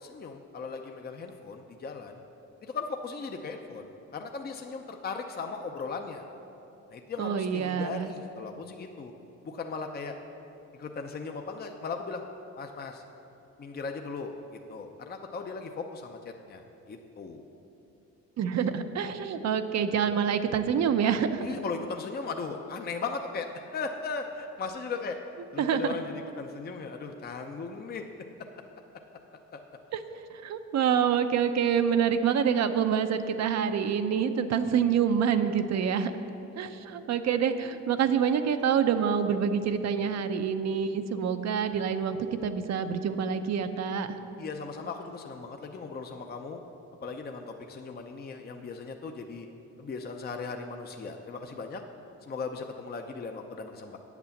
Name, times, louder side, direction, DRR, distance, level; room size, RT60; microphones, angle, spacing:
voice 1, 0.0-2.2 2.6-3.9 4.1-6.2 6.9-9.1 9.4-10.2 10.8-12.2 12.6-13.0 13.6-17.4 21.4-25.2 25.5-28.0 29.5-29.6 44.4-46.6 47.0-49.5 49.8-51.8 52.2-54.0, left 4 dB, 30° left, 4 dB, 0.6 m, -37 dB
voice 2, 7.2-8.1 18.4-21.5 25.6-25.9 29.9-30.0 30.3-36.1 36.6-44.2, right 7 dB, 60° right, 9 dB, 0.7 m, -27 dB
8.2 x 8.1 x 7.1 m, 2.9 s
cardioid pair, 90°, 30 cm